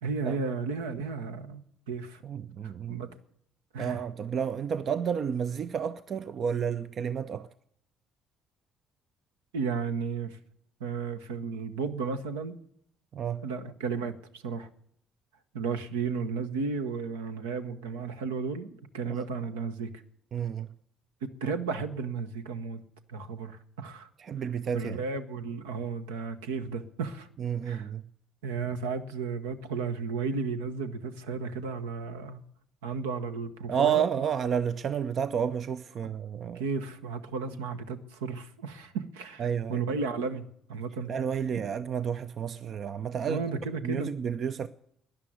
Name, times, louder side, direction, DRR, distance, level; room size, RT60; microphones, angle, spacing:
voice 1, 0.0-2.2 2.6-3.1 3.7-4.0 9.5-10.4 10.8-12.6 13.4-14.7 15.5-19.9 21.2-22.8 23.1-24.1 24.7-27.3 27.6-27.9 28.4-32.4 32.8-34.0 36.0-36.1 36.5-41.1 43.3-44.1, right 5 dB, 80° right, 0.9 m, -34 dB
voice 2, 2.2-3.0 3.8-7.5 13.1-13.4 19.1-19.3 20.3-20.7 24.2-25.0 27.4-28.0 33.7-36.6 39.4-39.8 41.1-43.4 43.8-44.7, right 8 dB, 50° right, 0.5 m, -30 dB
13.0 x 10.5 x 9.4 m
figure-of-eight pair, 50°, 0 cm